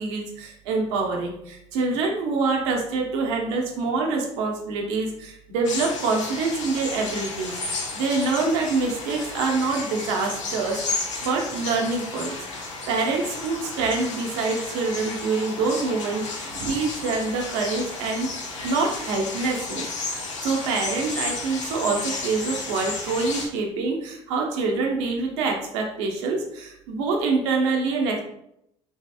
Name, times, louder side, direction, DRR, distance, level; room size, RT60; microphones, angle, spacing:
voice 1, 0.0-12.4 12.9-18.3 18.6-28.2, right 4 dB, 75° right, 1 dB, 0.6 m, -26 dB
sound 1, 5.6-23.5, left 3 dB, 90° left, 0.6 m, -33 dB
3.1 x 2.7 x 2.3 m, 0.78 s
hypercardioid pair, 60°, 15 cm